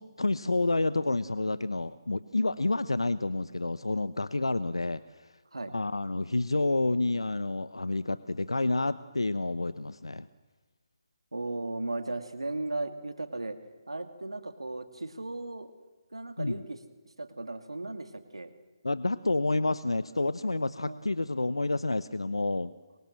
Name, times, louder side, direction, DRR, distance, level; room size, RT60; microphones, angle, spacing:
voice 1, 0.0-5.0 5.7-10.3 16.4-16.6 18.8-22.7, left 2 dB, 90° left, 14 dB, 0.9 m, -29 dB
voice 2, 11.3-13.6 13.9-15.7 16.1-16.8 17.2-18.5 20.8-21.0, right 2 dB, 90° right, 8 dB, 2.4 m, -36 dB
26.5 x 24.5 x 7.6 m, 1.2 s
figure-of-eight pair, 150°, 3 cm